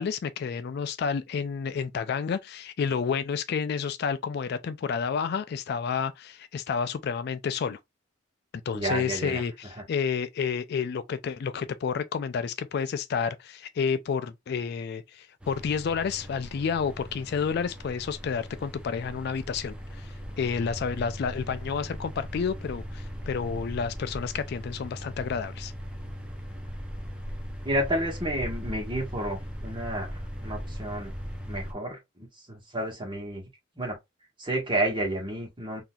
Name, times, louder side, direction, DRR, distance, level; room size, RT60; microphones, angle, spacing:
voice 1, 0.0-7.8 8.7-25.7, left 6 dB, 55° left, 0.3 m, -30 dB
voice 2, 8.7-9.4 9.7-9.8 27.6-31.1 31.4-33.4 33.8-34.0 34.4-35.8, right 1 dB, 25° right, 1.4 m, -31 dB
sound 1, 15.4-31.7, equal, 5° right, 0.6 m, -39 dB
3.9 x 2.8 x 2.3 m
head